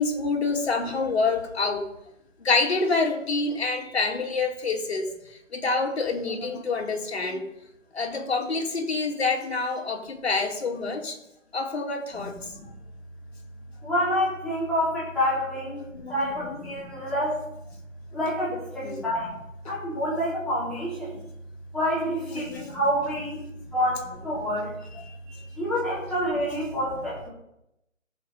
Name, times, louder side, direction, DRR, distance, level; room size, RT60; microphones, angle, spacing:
voice 1, 0.0-1.9 2.4-7.5 7.9-11.2 11.5-12.4 15.7-16.6 18.8-19.0 19.7-19.8 22.3-22.8 24.8-25.5, left 3 dB, 50° left, 1 dB, 2.6 m, -27 dB
voice 2, 13.8-15.7 16.1-17.4 18.1-19.4 19.7-21.2 21.7-24.7 25.6-27.3, equal, ahead, -9 dB, 3.6 m, -27 dB
15.0 x 6.9 x 5.5 m, 0.84 s
figure-of-eight pair, 150°, 39 cm